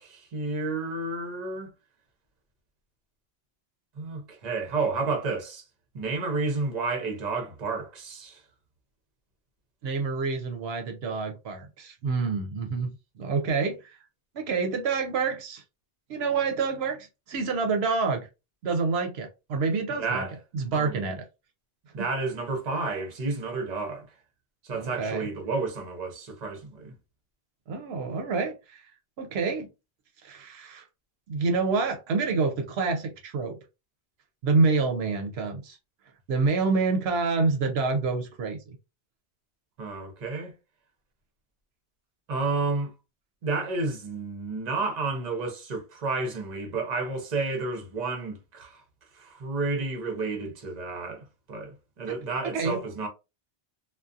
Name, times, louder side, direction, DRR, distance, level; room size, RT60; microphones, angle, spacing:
voice 1, 0.0-1.7 4.0-5.6 5.9-8.4 20.0-20.3 20.7-21.1 21.9-24.1 24.6-26.9 39.8-40.5 42.3-42.9 43.4-48.8 49.1-53.1, right 3 dB, 45° right, 0.8 m, -31 dB
voice 2, 9.8-14.0 14.3-15.6 16.1-18.3 18.6-20.2 20.5-21.3 22.0-22.1 24.7-25.3 27.7-28.9 29.2-29.7 30.2-30.8 31.3-33.6 34.4-35.8 36.3-38.8 52.1-52.2 52.5-52.8, right 4 dB, 80° right, 0.8 m, -27 dB
2.3 x 2.2 x 2.5 m
omnidirectional pair, 1.1 m